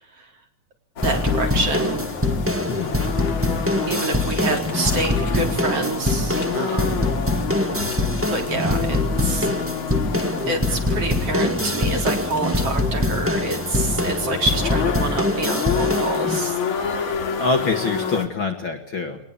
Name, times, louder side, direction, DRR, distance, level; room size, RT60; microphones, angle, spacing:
sound 1, 1.0-18.3, left 7 dB, 75° left, 3.9 m, -29 dB
sound 2, 1.0-16.4, left 1 dB, 10° right, 0.9 m, -24 dB
voice 1, 1.0-2.1 3.9-7.0 8.3-9.5 10.5-17.0, right 2 dB, 50° right, 3 dB, 4.9 m, -27 dB
voice 2, 17.4-19.2, left 3 dB, 45° left, 5 dB, 2.6 m, -25 dB
24.5 x 19.5 x 8.5 m, 0.62 s
omnidirectional pair, 3.4 m